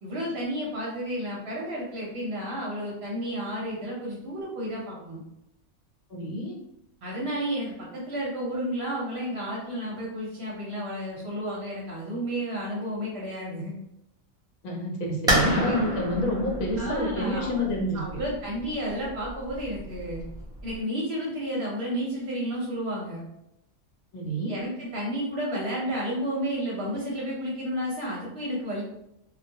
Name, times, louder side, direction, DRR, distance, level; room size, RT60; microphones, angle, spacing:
voice 1, 0.0-5.2 7.0-13.8 15.4-15.8 16.8-17.7 17.9-20.2 20.6-23.2 24.5-28.8, equal, 60° right, -4 dB, 0.8 m, -31 dB
voice 2, 6.1-6.6 14.6-18.2 24.1-24.6, equal, 75° left, 0 dB, 1.0 m, -28 dB
sound 1, 15.3-20.8, equal, 5° right, 0.4 m, -30 dB
2.2 x 2.2 x 2.6 m, 0.83 s
omnidirectional pair, 1.4 m